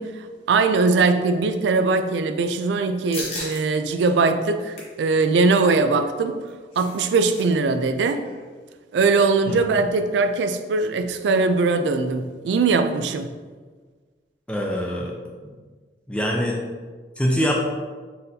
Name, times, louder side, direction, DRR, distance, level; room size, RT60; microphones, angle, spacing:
voice 1, 0.0-6.4 6.8-8.2 8.9-13.3, right 4 dB, 85° right, 9 dB, 0.3 m, -21 dB
sound 1, 3.1-3.6 4.0-4.1 4.5-5.0 6.3-7.4 7.7-7.8 8.2-8.4, left 2 dB, 35° left, 1.0 m, -35 dB
voice 2, 14.5-15.1 15.4-15.5 16.1-16.6 17.2-17.6, equal, 5° left, -1 dB, 0.4 m, -23 dB
4.1 x 3.8 x 2.7 m, 1.4 s
head